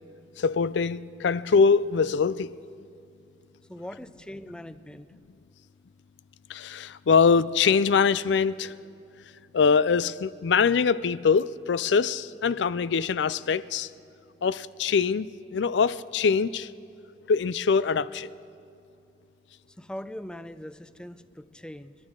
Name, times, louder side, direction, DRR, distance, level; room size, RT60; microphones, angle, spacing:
voice 1, 0.4-2.5 6.5-8.7 9.5-13.9 14.4-16.7 17.3-18.3, left 5 dB, 85° left, 0.4 m, -23 dB
voice 2, 3.7-5.1 19.7-22.0, left 1 dB, 5° left, 0.4 m, -41 dB
28.0 x 11.5 x 3.8 m
head